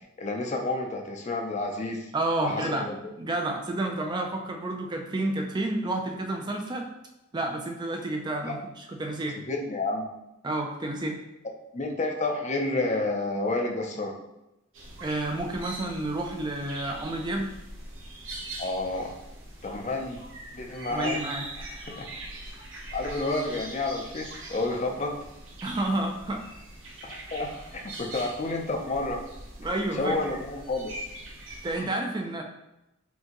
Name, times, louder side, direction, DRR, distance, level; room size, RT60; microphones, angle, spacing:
voice 1, 0.2-2.1 2.4-3.1 8.4-8.5 9.5-10.1 11.7-14.1 18.6-19.1 19.6-20.2 20.5-21.2 22.0-22.1 22.9-25.2 27.0-29.2 29.9-30.9, left 2 dB, 35° left, 2 dB, 0.5 m, -30 dB
voice 2, 2.1-2.9 3.2-6.9 7.3-9.4 10.4-11.2 15.0-17.5 20.9-21.5 25.6-26.4 29.6-30.2 31.6-32.4, right 2 dB, 20° right, 2 dB, 0.4 m, -30 dB
sound 1, 14.7-31.8, right 2 dB, 70° right, 0.9 m, -42 dB
4.4 x 2.7 x 2.9 m, 0.91 s
head